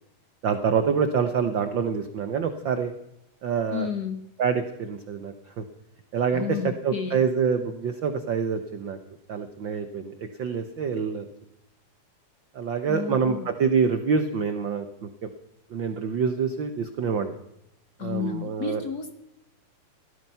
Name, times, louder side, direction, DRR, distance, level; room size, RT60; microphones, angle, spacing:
voice 1, 0.4-2.9 3.4-3.9 4.4-5.6 6.1-9.0 9.3-11.2 12.5-15.3 15.7-17.4 18.0-18.8, right 6 dB, 85° right, 9 dB, 1.0 m, -26 dB
voice 2, 3.7-4.2 6.3-7.2 12.9-13.5 18.0-19.2, left 7 dB, 60° left, 8 dB, 1.0 m, -31 dB
18.0 x 14.0 x 5.6 m, 0.83 s
omnidirectional pair, 3.6 m